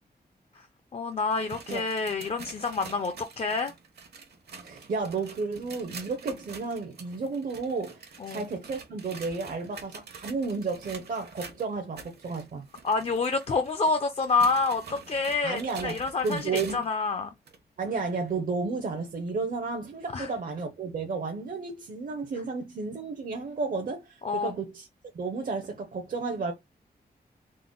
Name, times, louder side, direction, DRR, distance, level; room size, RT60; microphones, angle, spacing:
voice 1, 0.9-3.7 8.2-8.5 12.8-17.3 20.1-20.3 22.3-22.4 24.2-24.5, left 4 dB, 40° left, 0.4 m, -28 dB
sound 1, 1.1-17.0 17.5-17.6 18.3-18.4 19.3-19.4, right 5 dB, 75° right, 0.9 m, -46 dB
voice 2, 4.6-12.7 15.4-15.9 16.2-16.8 17.8-24.9 25.1-26.5, right 4 dB, 55° right, 0.6 m, -32 dB
3.8 x 2.0 x 3.7 m
wide cardioid pair, 160°, 17 cm